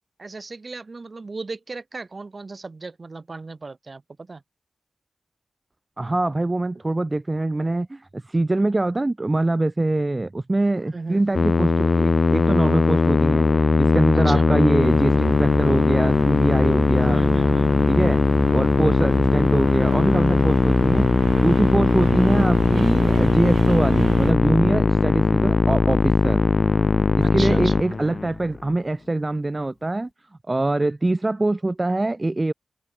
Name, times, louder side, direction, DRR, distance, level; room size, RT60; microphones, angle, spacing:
voice 1, 0.2-4.4 10.9-11.5 14.1-14.5 17.0-18.1 27.2-27.8, right 3 dB, 40° right, 7.1 m, -36 dB
voice 2, 6.0-17.2 17.9-18.2 18.5-26.4 27.2-30.1 30.5-32.5, right 2 dB, 25° right, 3.1 m, -24 dB
Musical instrument, 11.4-28.5, left 4 dB, 50° left, 0.3 m, -19 dB
sound 1, 14.8-24.3, right 6 dB, 80° right, 4.1 m, -31 dB
wide cardioid pair, 105°, 0 cm